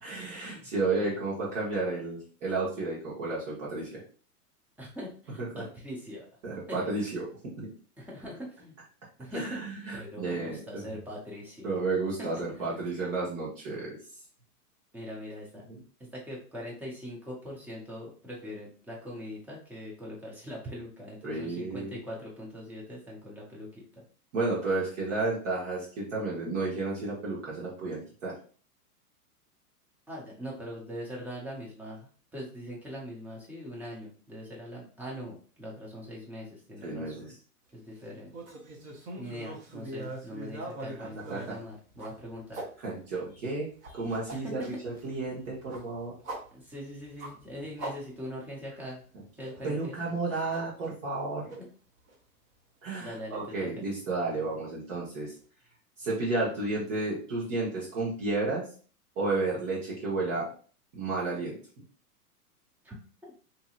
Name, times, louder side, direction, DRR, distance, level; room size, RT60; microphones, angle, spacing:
voice 1, 0.0-4.0 5.5-5.6 6.4-7.7 9.3-10.8 11.6-14.0 15.7-15.8 21.2-22.0 24.3-28.4 36.8-37.3 41.3-41.4 42.8-46.2 49.6-51.5 52.8-55.3 56.0-58.7 59.2-60.5 60.9-61.6, right 3 dB, 50° right, -5 dB, 1.2 m, -32 dB
voice 2, 4.8-6.3 6.7-7.1 8.0-8.8 9.2-9.6 9.9-11.8 12.4-12.8 14.9-15.6 16.1-23.7 24.0-24.1 30.1-37.3 37.7-38.3 39.2-42.6 44.3-44.7 46.5-49.0 49.4-49.9 51.5-51.7 53.0-53.7 62.8-62.9 63.2-63.3, equal, 5° right, -4 dB, 0.5 m, -42 dB
sound 1, 38.3-42.7 43.2-48.6 48.9-49.0 49.4-49.7 50.5-51.2 51.5-51.6 52.1-52.2 53.5-53.6, right 2 dB, 30° right, 0.8 m, -42 dB
2.8 x 2.6 x 2.4 m, 0.42 s
hypercardioid pair, 110°, 46 cm